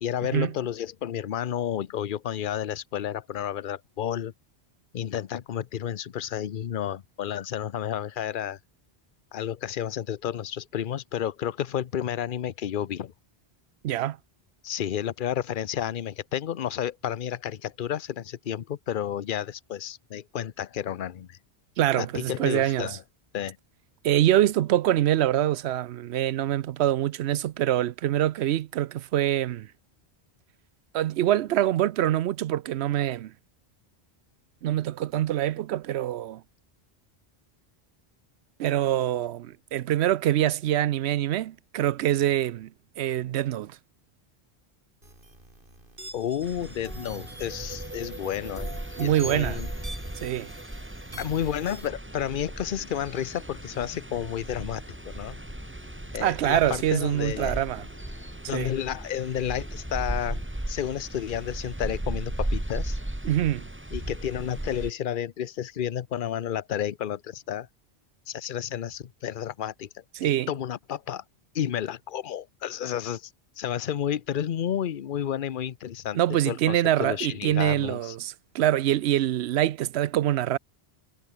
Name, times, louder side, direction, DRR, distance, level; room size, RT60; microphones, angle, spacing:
voice 1, 0.0-4.3 4.9-8.6 9.3-13.1 14.6-21.4 22.0-23.0 23.3-23.6 46.1-49.7 51.2-55.4 56.1-57.6 58.5-60.4 60.7-63.0 63.9-67.7 68.3-70.0 70.5-71.2 71.5-73.3 73.6-76.2 76.5-78.1, left 10 dB, 55° left, 0.8 m, -31 dB
voice 2, 13.8-14.2 21.8-23.0 24.0-29.7 30.9-33.3 34.6-36.4 38.6-42.7 43.0-43.8 49.0-49.6 50.2-50.5 56.2-57.9 58.5-58.7 63.2-63.6 70.1-70.5 76.1-80.6, right 12 dB, 85° right, 0.8 m, -25 dB
sound 1, 45.0-51.9, right 1 dB, 55° right, 5.3 m, -43 dB
sound 2, 46.4-64.9, right 1 dB, 10° right, 1.7 m, -36 dB
sound 3, 52.4-60.4, left 4 dB, 70° left, 2.0 m, -53 dB
omnidirectional pair, 1.1 m